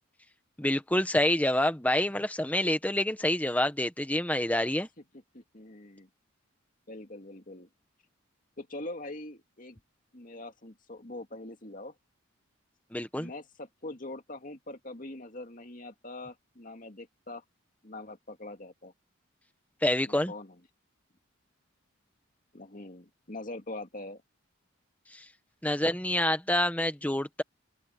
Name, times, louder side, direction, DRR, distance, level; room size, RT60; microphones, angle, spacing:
voice 1, 0.6-4.9 12.9-13.3 19.8-20.3 25.1-25.2 25.6-27.4, left 1 dB, 5° left, 1.3 m, -27 dB
voice 2, 5.3-6.1 6.9-7.7 8.6-9.8 10.1-11.9 13.2-17.4 17.8-18.9 20.0-20.6 22.5-24.2, left 2 dB, 40° left, 2.3 m, -43 dB
open air
head